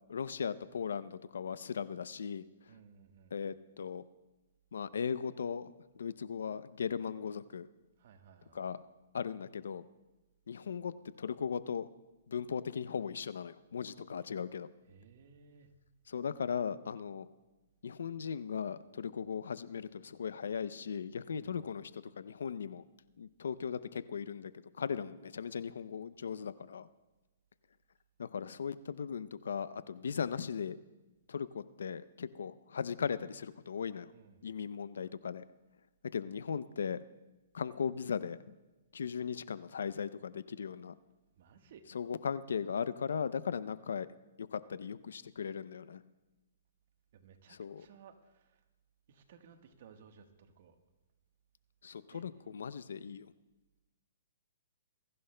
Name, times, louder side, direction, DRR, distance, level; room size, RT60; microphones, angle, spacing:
voice 1, 0.1-2.4 3.3-4.0 4.7-7.7 8.5-8.8 9.1-9.8 10.5-10.9 11.2-11.9 12.3-14.7 16.1-17.3 17.8-22.8 23.2-24.5 24.8-26.9 28.2-30.8 31.3-34.1 34.4-35.4 36.1-37.0 37.5-38.4 38.9-41.0 41.9-44.1 44.4-46.0 47.5-47.9 51.8-53.3, left 6 dB, 80° left, 15 dB, 0.5 m, -38 dB
voice 2, 2.7-3.4 8.0-8.7 14.8-15.7 21.3-21.6 34.1-34.4 41.4-41.9 47.1-48.6 49.1-50.8 52.1-52.3, right 6 dB, 55° right, 7 dB, 1.3 m, -59 dB
21.5 x 15.0 x 2.2 m, 1.1 s
hypercardioid pair, 150°, 0 cm